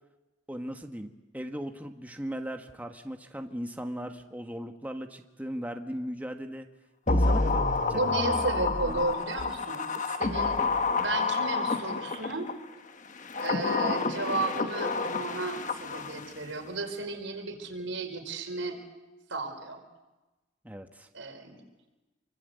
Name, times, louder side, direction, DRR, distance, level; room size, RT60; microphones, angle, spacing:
voice 1, 0.5-6.7 7.1-7.6 7.9-9.0 10.6-10.7 20.6-21.1, equal, 10° right, 5 dB, 1.4 m, -38 dB
sound 1, 7.1-12.5 13.2-16.4 16.7-16.8, left 3 dB, 40° left, 1.1 m, -28 dB
voice 2, 7.9-10.6 11.0-12.5 13.3-18.8 19.3-19.8 21.1-21.6, right 3 dB, 90° right, 5 dB, 5.1 m, -34 dB
28.5 x 24.0 x 8.1 m, 1.1 s
head